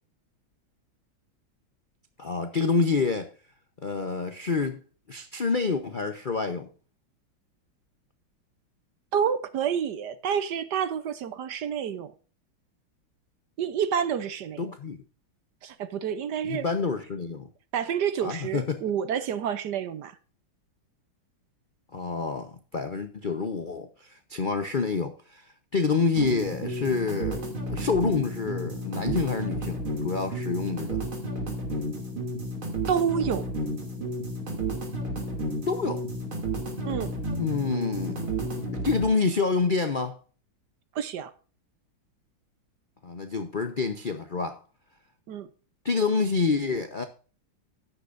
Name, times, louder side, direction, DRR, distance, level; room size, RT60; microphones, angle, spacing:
voice 1, 2.2-3.3 3.8-4.8 5.1-6.7 14.6-15.0 16.4-17.5 18.2-18.8 21.9-25.5 25.7-31.0 35.7-36.0 37.4-38.2 38.7-40.2 43.0-44.6 45.8-47.0, left 4 dB, 80° left, 0.4 m, -27 dB
voice 2, 9.1-12.1 13.6-14.7 15.6-16.7 17.7-20.1 32.9-33.5 36.8-37.1 40.9-41.3 45.3-45.5, right 8 dB, 65° right, 1.2 m, -28 dB
sound 1, 26.2-39.1, right 1 dB, 80° right, 3.5 m, -32 dB
13.0 x 10.0 x 2.6 m
omnidirectional pair, 2.3 m